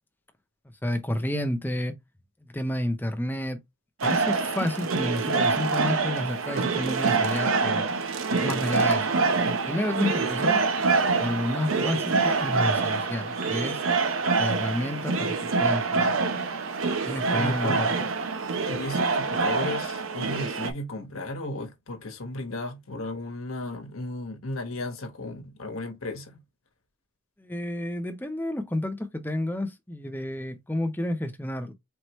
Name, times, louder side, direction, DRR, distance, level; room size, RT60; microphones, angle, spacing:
voice 1, 0.8-1.9 2.5-3.6 4.0-7.9 8.4-10.6 11.2-13.8 14.4-16.1 17.1-18.0 27.4-31.7, left 1 dB, 10° left, 0.6 m, -30 dB
sound 1, 4.0-20.7, right 4 dB, 80° right, 0.8 m, -26 dB
voice 2, 8.3-8.6 17.3-17.8 18.6-26.4, left 1 dB, 85° left, 1.1 m, -35 dB
4.4 x 3.0 x 3.0 m
head